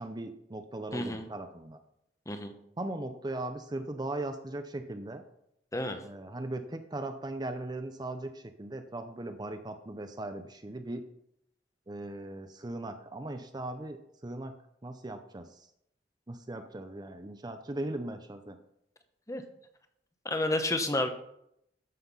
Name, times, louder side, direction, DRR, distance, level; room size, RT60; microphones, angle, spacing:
voice 1, 0.0-1.8 2.8-5.2 6.0-11.0 11.9-14.5 14.8-15.7 16.3-18.6, right 2 dB, 25° right, 7 dB, 0.6 m, -38 dB
voice 2, 0.9-1.3 2.3-2.5 5.7-6.0 19.3-19.4 20.2-21.1, left 2 dB, 20° left, 7 dB, 1.0 m, -30 dB
13.0 x 5.8 x 5.6 m, 0.76 s
head